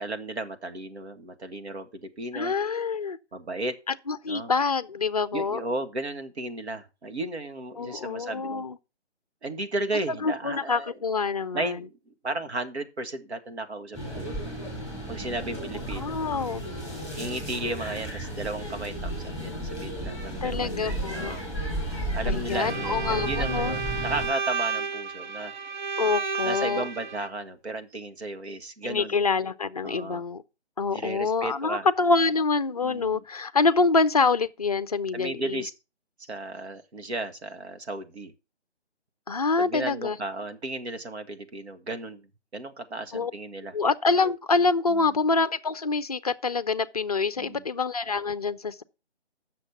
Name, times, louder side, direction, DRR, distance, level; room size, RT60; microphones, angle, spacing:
voice 1, 0.0-2.5 3.3-3.7 4.3-4.5 5.3-8.7 9.4-11.0 11.5-11.9 12.2-14.3 15.1-16.2 17.2-20.7 21.1-21.4 22.1-25.5 26.4-29.2 29.8-30.2 30.9-31.9 32.8-33.2 35.1-35.7 36.2-38.3 39.6-42.3 42.5-43.7 44.9-45.2 47.4-47.6, right 2 dB, 70° right, 1.6 m, -34 dB
voice 2, 2.3-3.2 4.1-5.6 7.8-8.8 10.1-11.8 16.0-16.6 20.4-21.4 22.3-23.8 26.0-26.8 28.8-30.4 30.8-35.6 39.3-40.2 43.1-43.3 43.7-48.8, left 4 dB, 35° left, 0.4 m, -26 dB
sound 1, 13.9-24.3, right 1 dB, 10° right, 2.6 m, -33 dB
Bowed string instrument, 22.6-27.3, right 5 dB, 45° right, 0.7 m, -32 dB
8.1 x 6.5 x 5.8 m
figure-of-eight pair, 160°, 34 cm